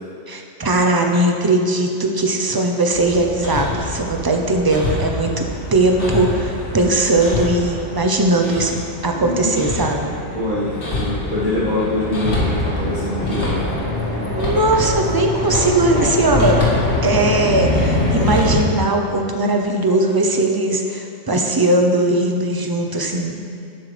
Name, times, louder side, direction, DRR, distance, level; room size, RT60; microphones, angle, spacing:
voice 1, 0.3-10.1 14.3-16.6 17.0-23.4, right 2 dB, 25° right, 3 dB, 0.6 m, -19 dB
Hammer, 2.9-18.6, left 2 dB, 65° left, 1.9 m, -24 dB
voice 2, 9.1-9.5 10.3-13.6, left 1 dB, 40° right, -10 dB, 1.9 m, -24 dB
11.5 x 7.8 x 3.4 m, 2.5 s
omnidirectional pair, 1.2 m